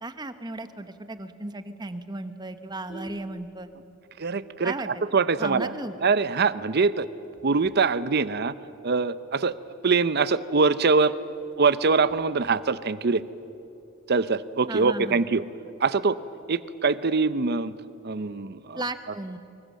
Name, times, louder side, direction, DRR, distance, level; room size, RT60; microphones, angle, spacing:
voice 1, 0.0-3.7 4.6-4.9 5.4-5.9 14.7-15.2 18.8-19.4, right 2 dB, 20° right, 10 dB, 1.1 m, -35 dB
Vehicle horn car horn honking, 2.6-4.1 4.6-4.8 5.1-5.2 5.6-5.7 6.0-6.4 6.9-8.8 9.1-9.2 9.5-9.6 10.0-10.1 10.5-10.6 10.8-12.9 14.1-14.5, right 1 dB, 25° left, 1.1 m, -45 dB
voice 2, 4.2-5.7 6.0-7.1 7.4-8.5 8.8-9.5 9.8-11.2 11.6-13.2 14.1-15.4 15.8-16.2 16.5-17.7 18.0-18.8, right 4 dB, 55° right, 15 dB, 0.7 m, -23 dB
24.5 x 23.5 x 7.5 m, 2.8 s
head